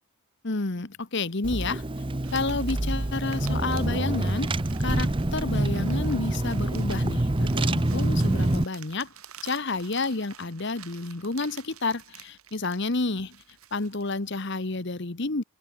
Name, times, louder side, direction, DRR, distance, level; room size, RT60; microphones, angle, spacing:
voice 1, 0.4-1.9 2.3-9.1 9.4-13.4 13.7-15.4, left 3 dB, 55° left, 1.2 m, -30 dB
Car / Engine, 1.4-8.6, right 1 dB, 25° right, 0.7 m, -26 dB
sound 1, 2.2-14.3, right 10 dB, 80° right, 3.8 m, -50 dB
head